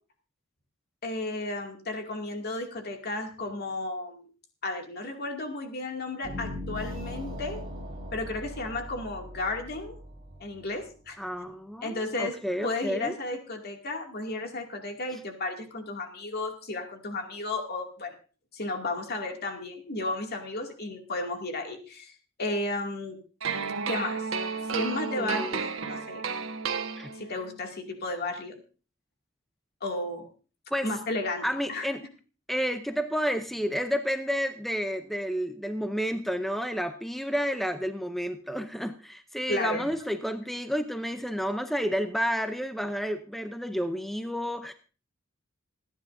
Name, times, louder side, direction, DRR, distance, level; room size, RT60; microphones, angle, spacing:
voice 1, 1.0-4.3 4.6-7.6 8.1-9.9 10.4-11.2 11.8-12.4 12.6-18.1 18.5-23.2 23.9-24.3 24.6-26.2 27.1-28.6 29.8-30.3 30.8-31.9 39.5-39.9, left 2 dB, 50° left, 3 dB, 2.4 m, -33 dB
sound 1, 6.2-11.5, left 1 dB, 30° right, 2.7 m, -40 dB
voice 2, 11.2-13.1 25.2-25.6 27.0-27.1 30.7-30.9 31.4-32.0 32.5-44.7, equal, ahead, 7 dB, 0.6 m, -30 dB
sound 2, 23.4-27.5, right 5 dB, 75° right, 1.3 m, -32 dB
27.0 x 10.0 x 2.6 m, 0.37 s
head